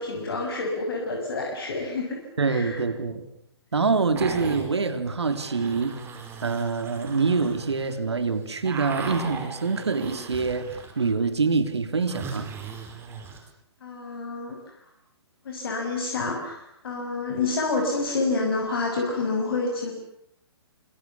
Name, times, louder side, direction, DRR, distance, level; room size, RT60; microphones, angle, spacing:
voice 1, 0.0-2.2 2.5-2.8 4.1-4.3 13.8-14.8 15.4-19.9, left 3 dB, 60° left, 1 dB, 6.6 m, -28 dB
voice 2, 2.4-3.3 3.7-6.0 6.4-10.7 11.0-12.5, right 4 dB, 75° right, 9 dB, 3.4 m, -25 dB
sound 1, 4.1-4.7 5.2-8.0 8.3-11.1 11.4-13.4, right 5 dB, 15° right, 5.4 m, -38 dB
28.0 x 27.0 x 7.2 m, 0.72 s
figure-of-eight pair, 130°, 14 cm